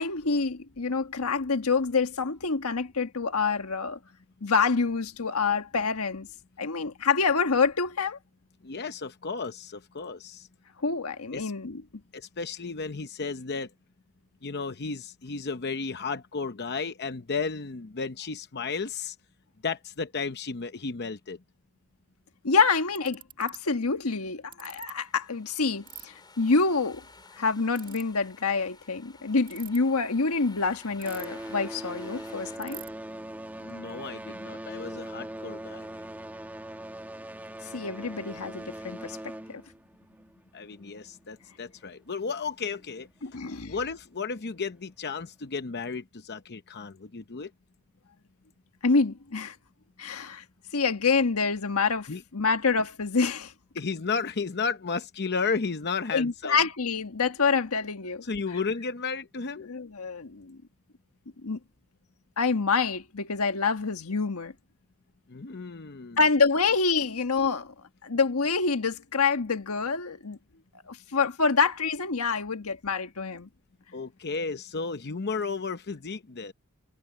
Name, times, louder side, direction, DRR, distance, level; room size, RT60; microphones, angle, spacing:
voice 1, 0.0-4.0 4.4-6.3 6.6-8.2 10.8-11.8 22.4-27.0 27.4-32.8 37.7-39.2 39.5-39.6 43.2-43.7 48.8-49.6 50.0-50.4 50.7-53.5 56.1-58.2 59.6-60.6 61.4-61.6 62.4-64.5 66.2-67.7 68.0-70.4 70.9-73.5, left 4 dB, 80° left, 1.4 m, -27 dB
voice 2, 8.6-10.5 11.3-11.5 12.1-13.7 14.4-19.1 19.6-21.4 33.6-35.8 40.5-43.1 43.7-47.5 52.1-52.2 53.7-56.6 58.2-59.7 65.3-66.2 73.9-76.5, left 4 dB, 50° left, 0.8 m, -33 dB
Ratchet pawl, 22.3-22.4 23.0-23.6 24.5-24.9 25.9-26.1 27.7-28.0 29.4-29.8 31.0-31.5 31.8-31.9 32.1-32.2 32.6-32.9, right 12 dB, 40° right, 1.9 m, -43 dB
sound 1, 24.9-32.6, left 3 dB, 20° left, 5.3 m, -53 dB
sound 2, 29.2-30.5 30.8-41.1 42.0-42.1 42.8-42.9 43.5-43.6, right 1 dB, 10° right, 1.3 m, -41 dB
head